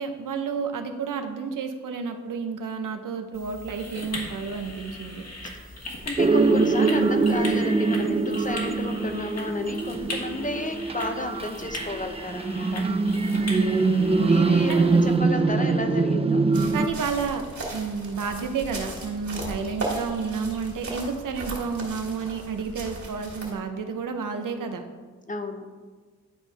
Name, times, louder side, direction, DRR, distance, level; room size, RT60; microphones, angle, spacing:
voice 1, 0.0-5.2 13.4-13.7 14.7-15.1 16.7-17.4 17.7-24.8, right 5 dB, 80° right, 6 dB, 0.8 m, -31 dB
sound 1, 3.3-15.2, left 2 dB, 55° left, 1.8 m, -39 dB
voice 2, 5.6-12.8 14.3-16.5 25.3-25.7, left 2 dB, 25° left, 6 dB, 0.7 m, -32 dB
sound 2, 6.2-16.9, right 3 dB, 20° right, 0.4 m, -23 dB
sound 3, 16.5-23.5, right 2 dB, 60° right, 2.4 m, -36 dB
11.0 x 4.4 x 3.4 m, 1.4 s
cardioid pair, 80°, 32 cm